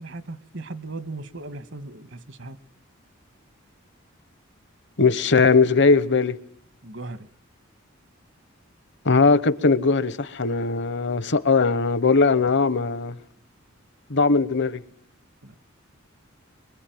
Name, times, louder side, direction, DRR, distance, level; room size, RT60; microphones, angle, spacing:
voice 1, 0.0-2.6 6.8-7.3 15.4-15.6, right 2 dB, 65° right, 1.5 m, -37 dB
voice 2, 5.0-6.4 9.0-13.2 14.1-14.8, left 4 dB, 60° left, 1.0 m, -19 dB
24.0 x 23.0 x 9.3 m
head